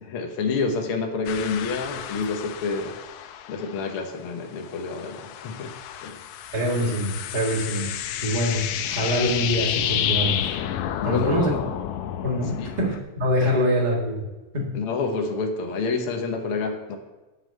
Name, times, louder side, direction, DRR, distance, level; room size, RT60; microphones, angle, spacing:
voice 1, 0.0-3.0 3.5-5.7 6.0-6.2 11.0-11.6 12.6-12.7 13.4-13.5 14.7-17.0, left 4 dB, 70° left, 3 dB, 1.3 m, -28 dB
sound 1, 1.3-4.2 4.5-13.0, left 10 dB, 90° left, 1.6 m, -30 dB
voice 2, 6.5-10.6 11.0-11.6 12.2-14.2 14.5-14.7, equal, 35° right, -3 dB, 0.6 m, -25 dB
9.6 x 5.7 x 7.6 m, 1.1 s
omnidirectional pair, 3.9 m